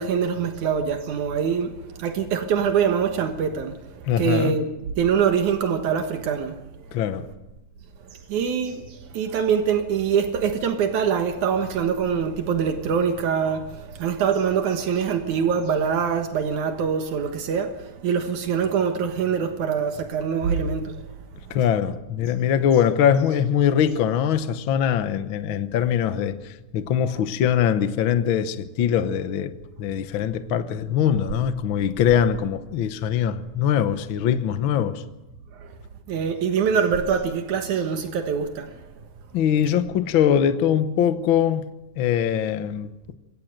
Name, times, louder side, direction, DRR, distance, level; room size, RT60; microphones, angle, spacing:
voice 1, 0.0-4.7 5.0-6.6 8.3-21.0 35.6-35.7 36.1-38.7, right 7 dB, 80° right, 2.8 m, -24 dB
voice 2, 4.0-4.6 6.9-7.3 21.5-35.0 39.3-41.7 42.0-42.9, left 9 dB, 60° left, 1.4 m, -22 dB
23.5 x 18.0 x 6.6 m
omnidirectional pair, 3.4 m